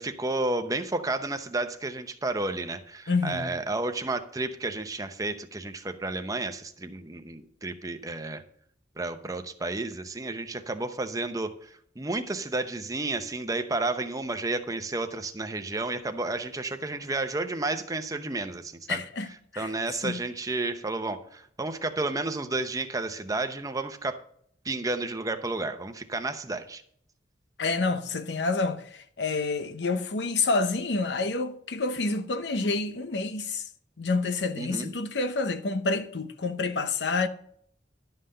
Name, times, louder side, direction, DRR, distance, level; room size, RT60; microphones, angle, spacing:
voice 1, 0.0-8.4 9.0-19.0 19.6-24.2 24.6-26.8 34.6-34.9, right 2 dB, 20° right, 0.8 m, -31 dB
voice 2, 3.1-3.5 18.9-19.7 20.0-20.2 27.6-33.6 34.0-37.3, left 3 dB, 75° left, 0.8 m, -28 dB
11.5 x 5.7 x 6.6 m
head